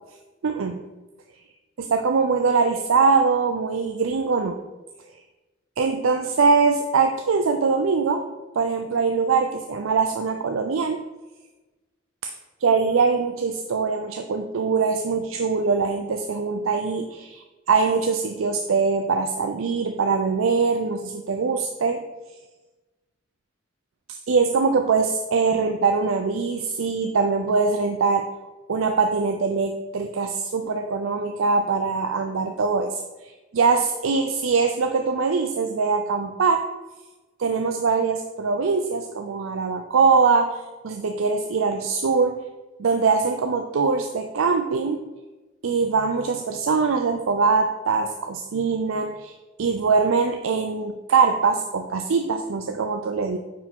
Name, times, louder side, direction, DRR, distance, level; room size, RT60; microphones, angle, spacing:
voice 1, 0.4-0.8 1.8-4.6 5.8-8.2 8.6-11.0 12.2-12.3 12.6-17.4 17.7-22.0 24.1-28.2 28.7-36.6 37.4-40.6 40.8-42.4 42.8-45.0 45.6-53.4, right 4 dB, 85° right, 6 dB, 0.5 m, -22 dB
9.3 x 4.8 x 3.6 m, 1.2 s
head